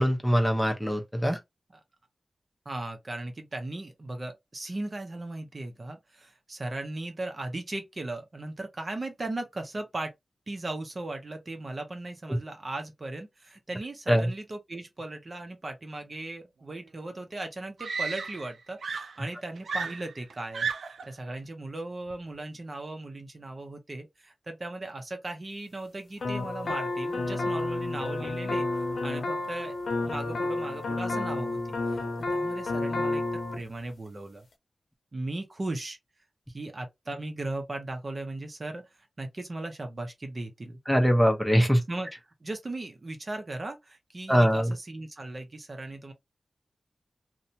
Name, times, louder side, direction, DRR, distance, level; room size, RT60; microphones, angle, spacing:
voice 1, 0.0-1.4 14.1-14.3 40.9-41.8 44.3-44.7, equal, ahead, 0.8 m, -22 dB
voice 2, 2.6-10.1 10.5-28.7 29.0-29.8 30.0-31.6 31.9-32.0 32.3-34.5 35.1-36.0 36.5-38.8 39.2-40.8 41.9-42.1 42.4-46.1, right 2 dB, 40° right, 0.7 m, -37 dB
Screaming, 17.0-17.1 17.8-18.6 18.8-21.1 22.1-22.4, right 5 dB, 85° right, 0.4 m, -34 dB
sound 1, 26.2-33.6, left 2 dB, 75° left, 0.7 m, -30 dB
2.7 x 2.2 x 2.7 m
wide cardioid pair, 85°, 0 cm